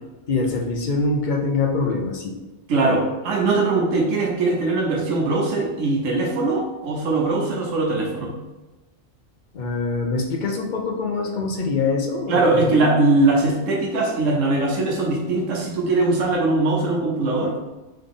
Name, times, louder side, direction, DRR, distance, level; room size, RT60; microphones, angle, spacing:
voice 1, 0.3-2.4 9.5-12.7, left 3 dB, 60° left, 2 dB, 0.5 m, -24 dB
voice 2, 2.7-8.3 12.3-17.6, right 2 dB, 80° right, -1 dB, 1.1 m, -21 dB
3.9 x 3.3 x 3.6 m, 1.1 s
omnidirectional pair, 1.3 m